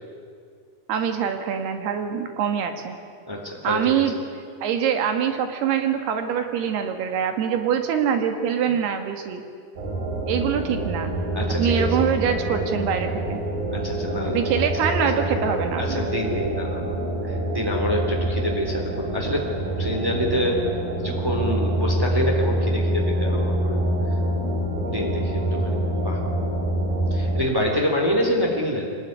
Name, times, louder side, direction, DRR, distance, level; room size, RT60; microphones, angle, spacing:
voice 1, 0.9-3.0 3.6-4.2 4.6-9.4 10.3-11.1 11.5-13.4 14.3-16.1, right 8 dB, 90° right, 6 dB, 3.9 m, -24 dB
voice 2, 3.3-4.0 11.3-12.0 13.7-14.4 15.8-19.5 19.8-20.6 21.0-23.8 24.8-26.2 27.1-29.0, equal, 5° right, 0 dB, 3.3 m, -27 dB
sound 1, 9.8-27.4, right 1 dB, 60° right, 4.8 m, -26 dB
25.0 x 19.0 x 9.7 m, 2.2 s
omnidirectional pair, 4.5 m